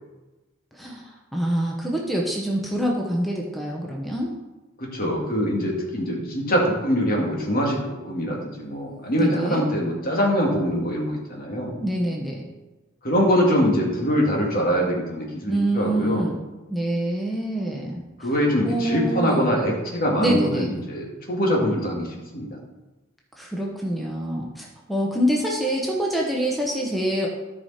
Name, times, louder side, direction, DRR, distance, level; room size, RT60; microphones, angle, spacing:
voice 1, 0.7-4.3 9.2-9.6 11.8-12.5 15.5-16.4 16.7-18.0 18.6-19.5 20.2-20.7 23.4-27.3, right 1 dB, ahead, -2 dB, 0.9 m, -25 dB
voice 2, 4.8-7.8 8.1-11.7 13.0-16.2 18.2-22.1 22.3-22.5, equal, 45° left, -1 dB, 2.1 m, -23 dB
13.0 x 5.0 x 4.3 m, 1.1 s
head